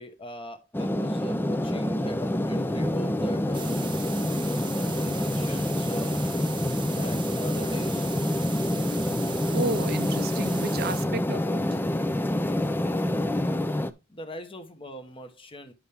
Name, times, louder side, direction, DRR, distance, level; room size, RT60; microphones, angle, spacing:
voice 1, 0.0-3.8 4.7-6.2 6.7-8.1 14.1-15.7, equal, 25° left, 1.2 m, -41 dB
sound 1, 0.7-13.9, left 1 dB, 10° left, 0.5 m, -27 dB
sound 2, 3.5-11.1, right 7 dB, 25° right, 0.9 m, -40 dB
voice 2, 9.2-11.8, right 3 dB, 50° right, 0.6 m, -33 dB
10.0 x 5.7 x 3.5 m
head